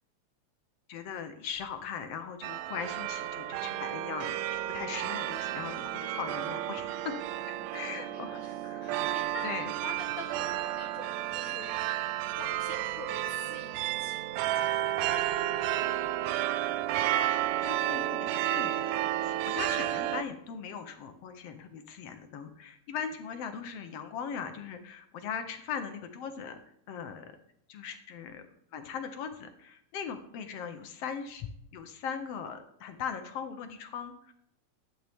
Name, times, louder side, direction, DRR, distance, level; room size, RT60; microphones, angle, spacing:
voice 1, 0.9-7.2 7.5-9.1 9.4-9.7 16.3-16.4 17.1-17.4 17.6-26.6 26.9-27.3 27.7-28.4 28.7-31.5 31.7-34.3, left 7 dB, 70° left, 7 dB, 1.7 m, -39 dB
sound 1, 2.4-20.2, right 13 dB, 80° right, 1.8 m, -32 dB
voice 2, 7.6-11.8 12.4-14.6, left 1 dB, 55° left, 1 dB, 1.5 m, -46 dB
11.5 x 9.1 x 3.5 m, 0.74 s
omnidirectional pair, 3.3 m